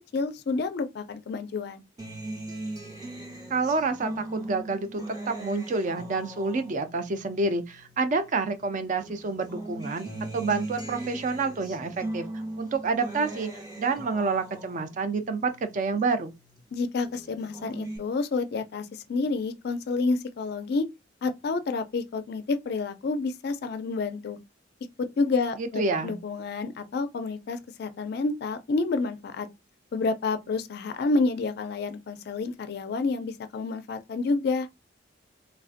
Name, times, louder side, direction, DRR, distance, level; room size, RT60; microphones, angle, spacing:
voice 1, 0.1-1.8 16.7-20.9 21.2-24.4 25.0-29.5 29.9-34.7, left 3 dB, 55° left, 0.3 m, -29 dB
Acoustic guitar, 2.0-8.6 9.0-16.6 17.0-18.0, right 1 dB, 20° right, 0.8 m, -39 dB
voice 2, 3.5-10.1 10.3-12.2 12.6-13.5 13.8-16.3 25.6-26.2, right 4 dB, 40° right, 0.4 m, -28 dB
3.2 x 2.5 x 2.4 m
head